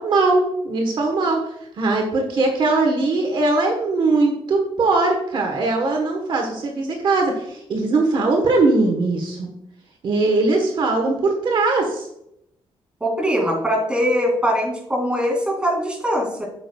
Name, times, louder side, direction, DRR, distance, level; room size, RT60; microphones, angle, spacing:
voice 1, 0.0-1.4 1.8-9.5 10.0-12.1, right 3 dB, 55° right, 2 dB, 1.1 m, -20 dB
voice 2, 13.0-16.4, equal, 10° right, -2 dB, 2.3 m, -21 dB
8.5 x 6.8 x 2.3 m, 0.78 s
wide cardioid pair, 160°, 10 cm